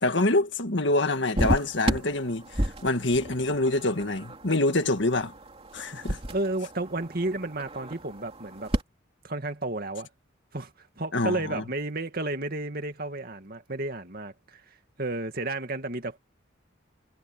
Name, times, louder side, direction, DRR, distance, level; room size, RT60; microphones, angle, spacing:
voice 1, 0.0-5.3 5.7-6.2 11.1-11.6, left 2 dB, 65° left, 1.8 m, -26 dB
sound 1, 1.3-8.8, right 1 dB, 30° right, 2.8 m, -33 dB
voice 2, 6.3-8.7 9.2-10.1 10.5-10.7 11.0-14.6 15.0-16.2, right 2 dB, 50° right, 2.3 m, -32 dB
head